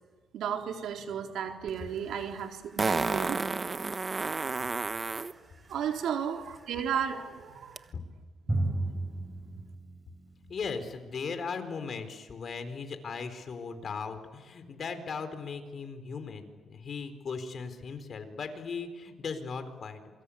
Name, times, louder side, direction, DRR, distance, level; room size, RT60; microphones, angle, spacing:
voice 1, 0.3-3.4 5.7-8.0 8.5-9.2, right 8 dB, 80° right, 3 dB, 3.9 m, -34 dB
Fart, 1.7-1.8 2.8-5.3 7.8-7.9, right 4 dB, 30° right, 1.2 m, -30 dB
Drum, 8.5-10.9, right 2 dB, 10° right, 4.5 m, -33 dB
voice 2, 10.5-20.0, left 5 dB, 50° left, 8 dB, 4.3 m, -38 dB
28.0 x 24.0 x 8.7 m, 1.3 s
cardioid pair, 105°, 0 cm